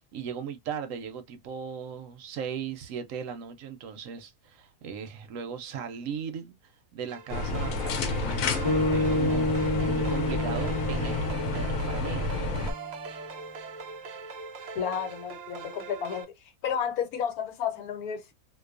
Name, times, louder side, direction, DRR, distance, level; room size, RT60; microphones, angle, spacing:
voice 1, 0.1-12.2, right 7 dB, 70° right, 0.9 m, -38 dB
sound 1, 7.1-16.2, right 4 dB, 85° right, 0.3 m, -41 dB
sound 2, 7.3-12.7, left 3 dB, 70° left, 1.0 m, -30 dB
sound 3, 8.6-13.0, left 1 dB, 30° left, 0.5 m, -29 dB
voice 2, 14.7-16.3 16.6-18.3, left 7 dB, 85° left, 1.3 m, -31 dB
2.5 x 2.2 x 2.4 m
omnidirectional pair, 1.5 m